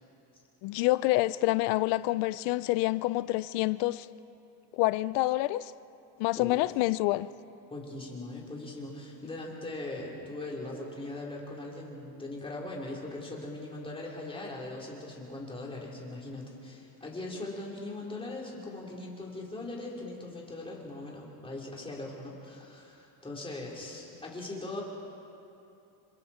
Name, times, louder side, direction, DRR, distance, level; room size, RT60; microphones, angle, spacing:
voice 1, 0.6-4.1 4.7-5.7 6.2-7.3, left 19 dB, 75° left, 0.6 m, -27 dB
voice 2, 7.7-24.8, left 2 dB, 15° left, 4.0 m, -40 dB
28.5 x 25.5 x 4.5 m
cardioid pair, 145°, 42 cm